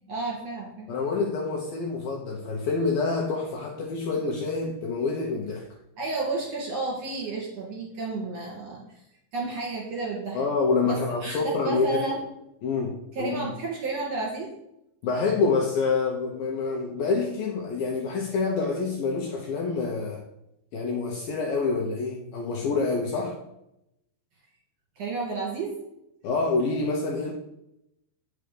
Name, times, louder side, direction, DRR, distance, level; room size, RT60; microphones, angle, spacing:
voice 1, 0.1-0.9 6.0-9.0 9.3-10.4 10.8-12.2 13.1-14.5 25.0-25.7, right 3 dB, 45° right, -3 dB, 3.0 m, -31 dB
voice 2, 0.9-5.7 10.3-12.0 12.6-13.4 15.0-20.2 20.7-23.4 26.2-27.3, left 4 dB, 70° left, -1 dB, 2.3 m, -27 dB
9.1 x 6.4 x 5.2 m, 0.83 s
omnidirectional pair, 5.1 m